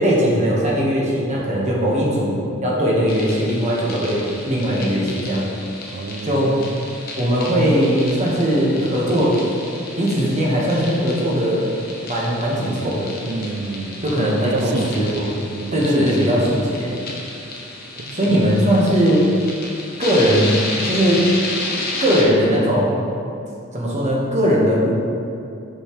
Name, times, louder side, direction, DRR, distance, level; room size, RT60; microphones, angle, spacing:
voice 1, 0.0-5.4 6.2-6.6 7.2-9.3 10.0-11.7 12.1-13.1 14.0-15.3 15.7-17.0 18.1-19.2 20.0-21.2 22.0-23.0 23.7-24.9, equal, 35° right, -4 dB, 1.2 m, -19 dB
voice 2, 1.3-1.8 5.9-6.8 13.2-16.5 18.0-18.5, right 3 dB, 50° right, 7 dB, 0.4 m, -30 dB
sound 1, 3.1-22.2, left 2 dB, 45° left, 1.0 m, -32 dB
6.7 x 5.4 x 3.1 m, 2.6 s
head